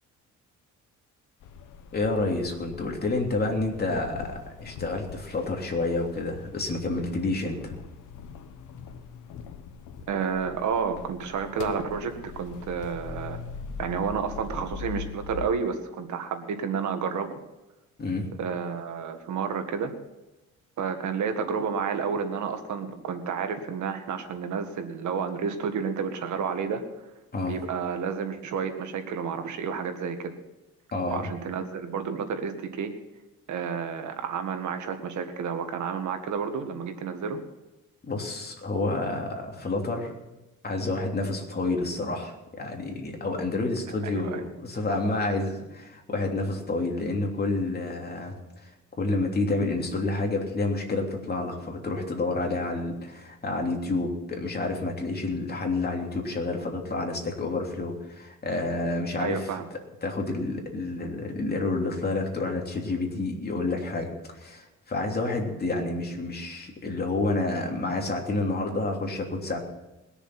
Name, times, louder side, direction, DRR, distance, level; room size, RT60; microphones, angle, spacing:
sound 1, 1.4-15.5, left 7 dB, 80° left, 1.1 m, -42 dB
voice 1, 1.9-7.7 18.0-18.3 27.3-27.6 30.9-31.3 38.0-40.1 40.6-48.7 49.0-59.5 60.0-69.6, left 2 dB, 30° left, 1 dB, 3.1 m, -29 dB
voice 2, 10.1-13.4 13.8-17.4 18.4-19.9 20.8-27.1 27.5-30.3 31.1-32.9 33.5-37.4 44.0-44.4 59.2-59.7, right 6 dB, 70° right, 6 dB, 1.9 m, -30 dB
21.0 x 7.0 x 6.0 m, 1.0 s
cardioid pair, 90°, 30 cm